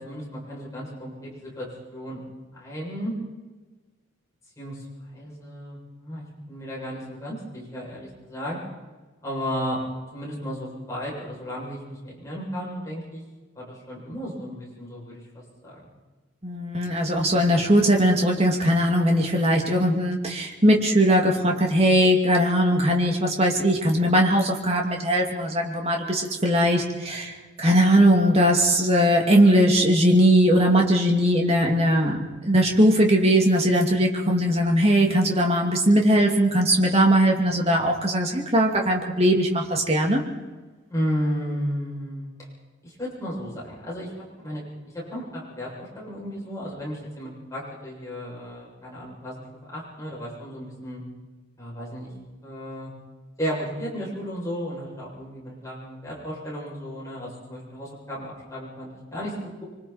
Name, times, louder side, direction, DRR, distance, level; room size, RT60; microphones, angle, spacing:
voice 1, 0.0-1.7 1.9-2.2 2.5-3.1 4.6-8.6 9.2-9.8 10.1-13.2 13.6-15.9 40.9-42.3 42.8-44.1 44.4-49.4 49.7-51.0 51.6-52.1 52.4-52.9 53.4-59.3, equal, 15° left, -6 dB, 7.4 m, -34 dB
voice 2, 16.4-40.2, equal, 30° right, 0 dB, 2.7 m, -20 dB
25.5 x 24.5 x 4.5 m, 1.3 s
head